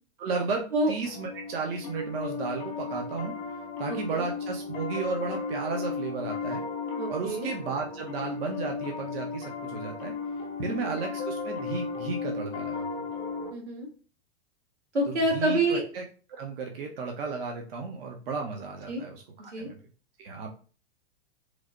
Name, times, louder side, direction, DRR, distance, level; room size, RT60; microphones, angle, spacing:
voice 1, 0.2-3.3 3.8-6.6 7.1-10.1 10.6-12.9 15.1-16.0 16.4-19.8 20.2-20.5, right 4 dB, 60° right, 1 dB, 0.6 m, -34 dB
Piano, 1.0-13.5, left 4 dB, 30° left, 0.6 m, -35 dB
voice 2, 3.9-4.2 7.0-7.5 10.7-11.0 13.5-13.9 14.9-15.8 18.9-19.0 19.5-19.7, right 1 dB, 90° right, 0 dB, 1.1 m, -27 dB
3.1 x 2.0 x 2.5 m, 0.39 s
figure-of-eight pair, 105°, 33 cm